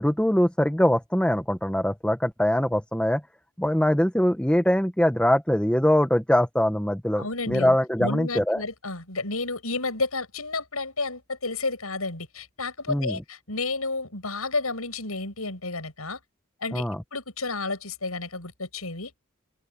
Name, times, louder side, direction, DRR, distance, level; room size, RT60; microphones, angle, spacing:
voice 1, 0.0-3.2 3.6-8.6 12.9-13.2 16.7-17.0, equal, 5° left, 1.4 m, -23 dB
voice 2, 7.2-16.2 16.6-16.8 17.1-19.1, left 3 dB, 80° left, 7.6 m, -31 dB
open air
head